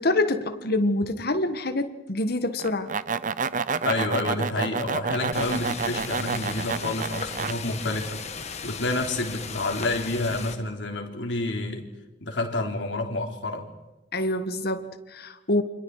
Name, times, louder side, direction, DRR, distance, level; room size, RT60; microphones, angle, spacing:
voice 1, 0.0-2.9 14.1-15.6, left 2 dB, 55° left, 9 dB, 1.6 m, -26 dB
sound 1, 2.6-7.5, right 5 dB, 45° right, 0.7 m, -29 dB
voice 2, 3.8-8.2 8.6-11.8 12.2-13.7, left 2 dB, 70° left, 2 dB, 3.7 m, -29 dB
sound 2, 5.3-10.6, left 5 dB, 35° left, 2.0 m, -36 dB
29.5 x 26.0 x 4.9 m, 1.1 s
head